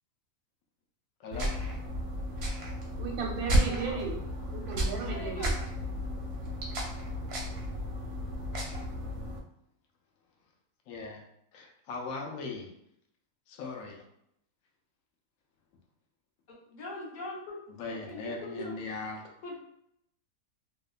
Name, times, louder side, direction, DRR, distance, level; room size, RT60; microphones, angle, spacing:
voice 1, 1.2-1.5 10.9-11.2 11.5-12.7 13.5-14.0 17.8-19.2, left 3 dB, 75° left, 0 dB, 1.0 m, -39 dB
sound 1, 1.3-9.4, equal, 60° right, 0.7 m, -33 dB
voice 2, 3.0-4.2 4.5-5.5, right 5 dB, 90° right, 0 dB, 1.2 m, -35 dB
voice 3, 3.7-4.0 4.9-5.5 16.7-18.8 19.4-19.6, left 2 dB, 50° left, -4 dB, 0.6 m, -42 dB
2.8 x 2.1 x 2.3 m, 0.75 s
omnidirectional pair, 1.6 m